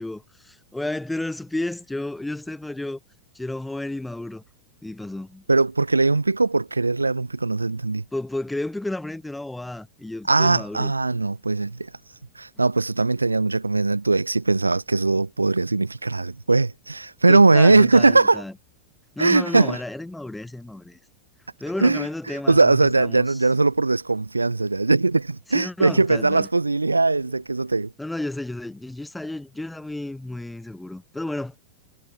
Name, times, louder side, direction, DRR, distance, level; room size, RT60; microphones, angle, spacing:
voice 1, 0.0-3.0 3.3-4.4 4.8-5.4 8.1-10.9 17.3-18.5 19.1-21.0 21.6-23.5 25.5-26.5 28.0-31.6, left 2 dB, 5° left, 5.1 m, -32 dB
voice 2, 5.5-8.0 10.3-11.9 12.4-18.4 19.2-19.8 21.8-27.9, right 3 dB, 80° right, 4.0 m, -20 dB
figure-of-eight pair, 90°, 0 cm